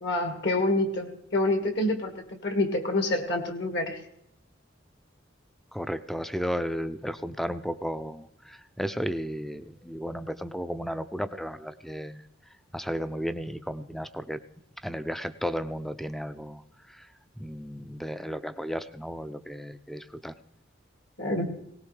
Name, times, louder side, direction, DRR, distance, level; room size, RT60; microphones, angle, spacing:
voice 1, 0.0-2.1 2.4-4.0 21.2-21.6, left 2 dB, 65° left, 5 dB, 1.8 m, -27 dB
voice 2, 5.7-12.2 12.7-14.4 14.8-16.6 16.9-17.1 17.4-20.3, equal, ahead, 12 dB, 0.4 m, -34 dB
19.0 x 18.0 x 3.3 m, 0.79 s
head